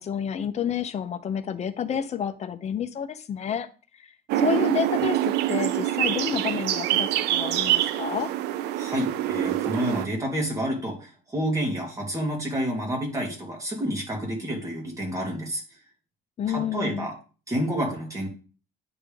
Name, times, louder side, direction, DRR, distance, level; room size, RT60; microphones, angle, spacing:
voice 1, 0.0-3.7 3.9-8.3 16.4-17.1, left 8 dB, 40° left, 10 dB, 0.7 m, -30 dB
sound 1, 4.3-10.1, right 12 dB, 85° right, 0.5 m, -25 dB
voice 2, 8.8-15.6 16.5-17.1 17.5-18.3, equal, 20° right, -1 dB, 2.7 m, -29 dB
9.5 x 3.6 x 3.5 m, 0.36 s
cardioid pair, 110°, 17 cm